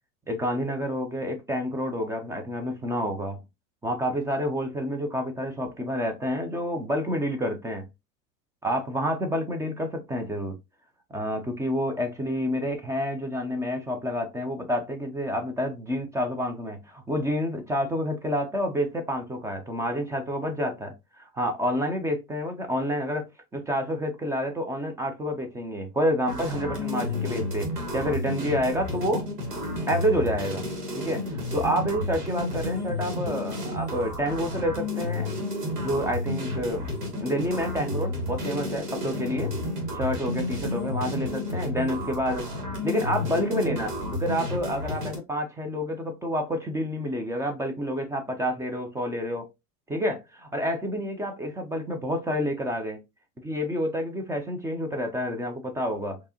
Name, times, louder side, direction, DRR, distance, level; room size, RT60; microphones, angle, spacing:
voice 1, 0.3-3.4 3.8-7.9 8.6-10.6 11.1-23.3 23.5-29.3 29.9-30.6 30.9-35.3 35.8-39.5 39.9-42.4 42.8-49.5 49.9-53.0 53.4-56.2, equal, 5° right, 0.4 m, -29 dB
sound 1, 26.3-45.2, left 1 dB, 85° right, 1.6 m, -31 dB
4.5 x 2.8 x 2.8 m
hypercardioid pair, 90°, 46 cm